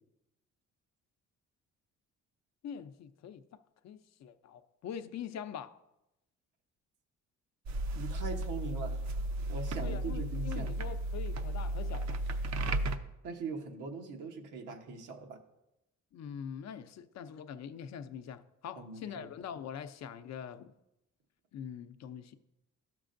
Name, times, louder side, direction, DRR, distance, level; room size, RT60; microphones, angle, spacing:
voice 1, 2.6-3.4 3.8-5.8 9.7-12.4 16.1-20.7 21.5-22.4, left 8 dB, 60° left, 0.6 m, -44 dB
sound 1, 7.7-13.0, right 1 dB, 65° right, 0.6 m, -34 dB
voice 2, 8.0-9.0 9.5-10.7 13.2-15.4 18.8-19.3, right 4 dB, 90° right, 1.1 m, -41 dB
13.0 x 6.0 x 2.6 m
cardioid pair, 90°, 30 cm